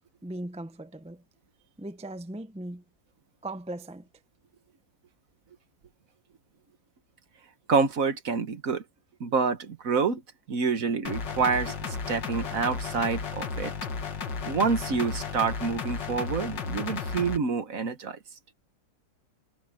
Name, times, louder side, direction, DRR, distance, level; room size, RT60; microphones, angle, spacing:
voice 1, 0.2-1.2 1.8-2.8 3.4-4.1, right 1 dB, 5° right, 0.4 m, -38 dB
voice 2, 7.7-8.8 9.2-10.2 10.5-13.7 14.4-18.2, right 5 dB, 50° right, 1.6 m, -27 dB
sound 1, 11.1-17.4, left 5 dB, 75° left, 2.5 m, -34 dB
omnidirectional pair, 2.0 m